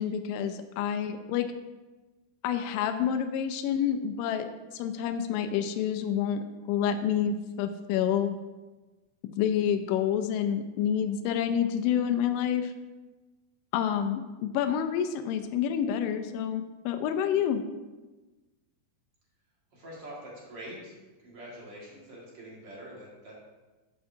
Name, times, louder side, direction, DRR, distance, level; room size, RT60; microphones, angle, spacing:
voice 1, 0.0-1.5 2.4-4.5 4.7-8.4 9.2-12.7 13.7-17.6, left 9 dB, 85° left, 8 dB, 3.0 m, -28 dB
voice 2, 19.7-21.0 21.2-23.3, right 1 dB, 45° right, -4 dB, 1.9 m, -45 dB
12.0 x 8.7 x 2.7 m, 1.2 s
omnidirectional pair, 5.4 m